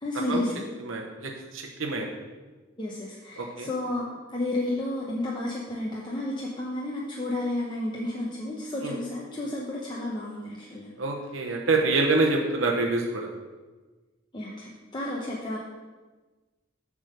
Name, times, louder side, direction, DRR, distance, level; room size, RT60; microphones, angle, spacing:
voice 1, 0.0-0.7 2.8-10.9 14.3-15.6, left 1 dB, 25° left, -4 dB, 0.8 m, -32 dB
voice 2, 0.8-2.1 3.4-3.7 8.8-9.0 11.0-13.3, right 3 dB, 90° right, 1 dB, 0.9 m, -26 dB
7.6 x 3.7 x 6.5 m, 1.3 s
head